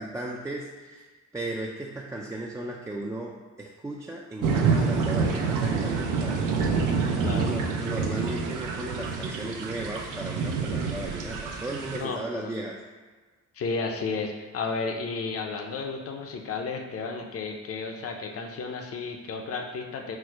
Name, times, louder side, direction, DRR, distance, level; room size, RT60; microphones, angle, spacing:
voice 1, 0.0-6.4 7.3-12.8, right 1 dB, 10° right, -2 dB, 0.3 m, -36 dB
sound 1, 4.4-12.0, right 5 dB, 85° right, 0.6 m, -27 dB
voice 2, 7.2-7.6 11.9-12.5 13.5-20.2, left 4 dB, 50° left, 3 dB, 0.6 m, -33 dB
4.5 x 2.1 x 4.6 m, 1.4 s
cardioid pair, 90°, 30 cm